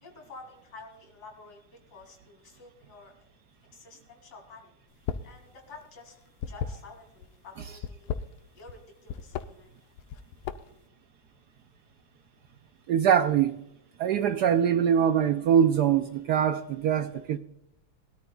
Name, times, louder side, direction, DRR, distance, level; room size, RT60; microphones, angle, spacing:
voice 1, 0.0-1.6 1.9-3.1 3.7-4.7 5.2-6.2 6.5-8.2 8.5-9.7, left 3 dB, 45° left, 3.5 m, -49 dB
sound 1, 4.9-5.4 5.6-7.3 7.7-8.8 9.1-9.5 10.0-10.8, left 8 dB, 90° left, 1.7 m, -34 dB
voice 2, 12.9-13.6 14.0-17.4, right 8 dB, 85° right, 0.9 m, -23 dB
22.5 x 13.0 x 2.3 m
omnidirectional pair, 2.4 m